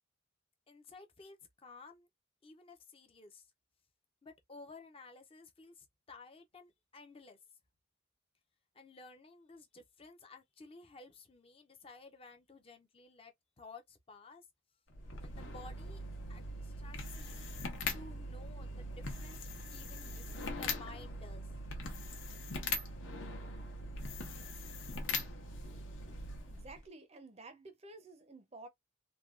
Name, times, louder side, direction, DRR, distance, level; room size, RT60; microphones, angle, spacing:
voice 1, 0.7-2.1 2.4-3.5 4.2-7.4 8.7-14.5 15.2-17.6 17.9-21.5, left 3 dB, 25° left, 0.5 m, -55 dB
sound 1, 14.9-26.9, left 2 dB, 65° left, 0.8 m, -41 dB
voice 2, 26.5-28.7, right 2 dB, 30° right, 0.5 m, -52 dB
3.2 x 2.2 x 2.4 m
head